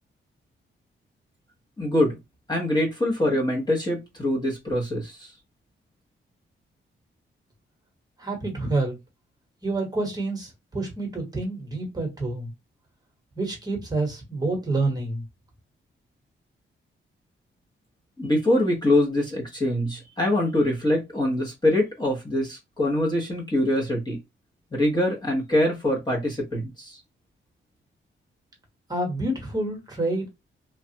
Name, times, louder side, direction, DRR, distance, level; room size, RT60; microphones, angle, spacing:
voice 1, 1.8-2.2 2.5-5.3 18.2-24.2 24.7-27.0, left 1 dB, 20° left, 0.9 m, -24 dB
voice 2, 8.2-9.0 9.6-12.5 13.4-15.2 28.9-30.2, right 2 dB, 20° right, 1.1 m, -28 dB
3.2 x 2.3 x 2.8 m
wide cardioid pair, 135°, 21 cm